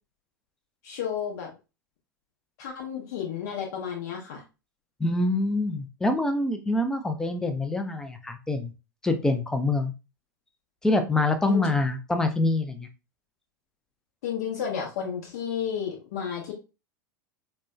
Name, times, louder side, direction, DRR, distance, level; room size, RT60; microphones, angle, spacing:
voice 1, 0.8-1.5 2.6-4.4 11.5-11.6 14.2-16.5, left 8 dB, 55° left, 0 dB, 0.7 m, -32 dB
voice 2, 5.0-8.7 9.0-9.9 10.8-12.9, left 2 dB, 5° left, 7 dB, 0.4 m, -25 dB
4.2 x 2.2 x 2.2 m, 0.29 s
figure-of-eight pair, 90°, 11 cm